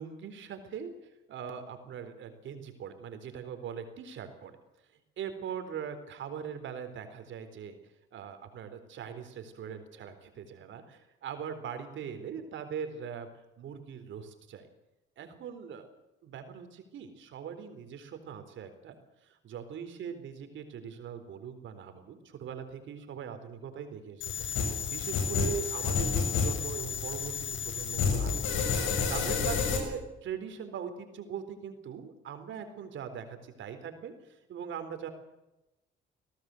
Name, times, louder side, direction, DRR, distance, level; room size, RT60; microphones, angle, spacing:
voice 1, 0.0-4.6 5.2-7.8 8.1-13.3 13.6-14.7 15.2-15.8 16.2-19.0 19.2-35.1, right 7 dB, 75° right, 8 dB, 4.0 m, -41 dB
sound 1, 24.2-29.8, left 6 dB, 80° left, 7.1 m, -30 dB
22.0 x 17.5 x 7.9 m, 0.95 s
cardioid pair, 90°, 20 cm